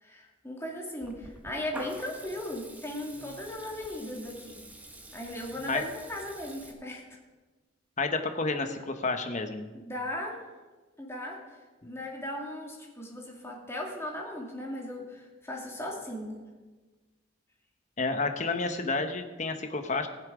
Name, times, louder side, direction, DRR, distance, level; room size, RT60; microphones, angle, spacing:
voice 1, 0.0-4.6 5.1-7.2 9.7-10.4 11.0-11.4 11.8-16.3, left 1 dB, 15° left, -1 dB, 2.4 m, -37 dB
Water tap faucet / Liquid, 1.0-6.7, right 1 dB, 10° right, 1.2 m, -47 dB
voice 2, 8.0-9.7 18.0-20.1, left 3 dB, 40° left, 7 dB, 1.1 m, -30 dB
19.0 x 7.4 x 5.1 m, 1.2 s
head